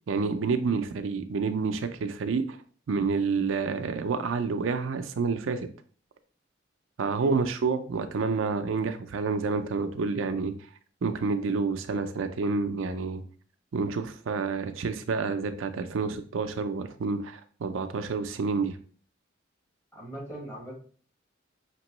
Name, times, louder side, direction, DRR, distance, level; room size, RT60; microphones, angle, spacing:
voice 1, 0.1-2.6 2.9-5.7 7.0-10.5 11.0-13.2 13.7-18.8, right 4 dB, 90° right, 8 dB, 0.5 m, -29 dB
voice 2, 19.9-20.8, right 1 dB, 15° left, -3 dB, 1.5 m, -40 dB
5.2 x 3.0 x 3.0 m, 0.43 s
head